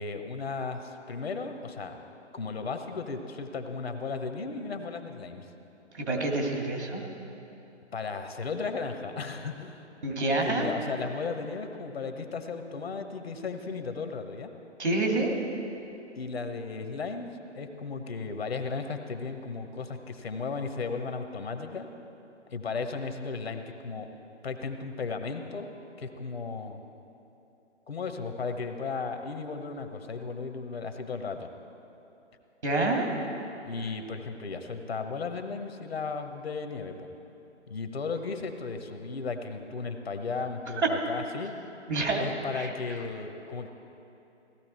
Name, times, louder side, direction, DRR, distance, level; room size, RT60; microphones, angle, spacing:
voice 1, 0.0-2.0 2.3-5.5 7.9-9.9 10.4-14.5 16.2-21.9 22.5-24.1 24.4-26.8 27.9-31.5 33.6-37.1 37.7-41.5 42.2-43.7, left 4 dB, 55° left, 7 dB, 1.1 m, -35 dB
voice 2, 5.9-7.0 10.0-10.7 14.8-15.3 32.6-33.1 40.8-40.9 41.9-42.2 42.5-42.7, right 2 dB, 70° right, 0 dB, 2.6 m, -27 dB
16.5 x 13.5 x 4.5 m, 2.9 s
figure-of-eight pair, 135°, 36 cm